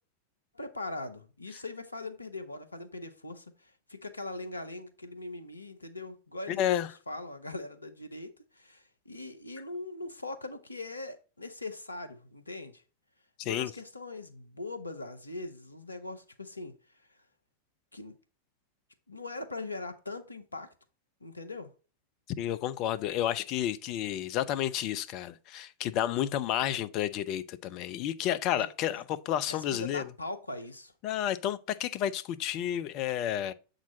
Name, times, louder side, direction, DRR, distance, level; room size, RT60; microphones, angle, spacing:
voice 1, 0.5-3.4 3.9-8.3 8.6-12.8 13.4-16.7 17.9-18.1 19.1-20.7 21.2-21.7 28.6-28.7 29.5-30.9, left 2 dB, 80° left, 0.8 m, -41 dB
voice 2, 6.5-6.9 13.4-13.7 22.4-30.1 31.0-33.5, left 11 dB, 40° left, 0.5 m, -31 dB
7.3 x 3.8 x 4.2 m
figure-of-eight pair, 90°, 0 cm